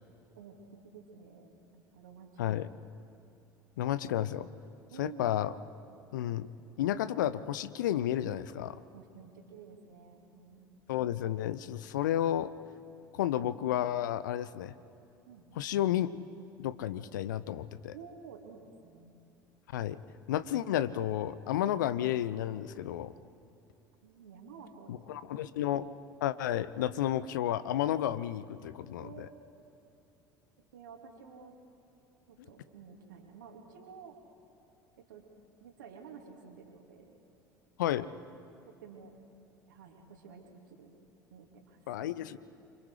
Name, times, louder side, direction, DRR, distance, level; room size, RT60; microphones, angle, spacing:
voice 1, 0.8-2.3 4.9-5.3 5.9-6.0 8.9-10.8 15.3-15.6 17.9-19.2 24.0-25.4 29.0-29.3 30.7-31.6 32.3-34.1 35.0-35.2 35.6-37.1 38.7-39.2 39.7-40.9 41.3-42.1, right 6 dB, 70° right, 2 dB, 3.0 m, -52 dB
voice 2, 3.8-4.5 5.0-5.5 6.1-6.5 6.8-8.8 10.9-12.5 13.1-14.7 15.6-16.1 16.6-17.9 19.7-20.0 20.3-23.1 24.9-25.9 26.2-29.3 37.8-38.1 41.9-42.4, left 12 dB, 70° left, 15 dB, 0.7 m, -32 dB
28.0 x 25.0 x 5.0 m, 2.7 s
figure-of-eight pair, 65°, 11 cm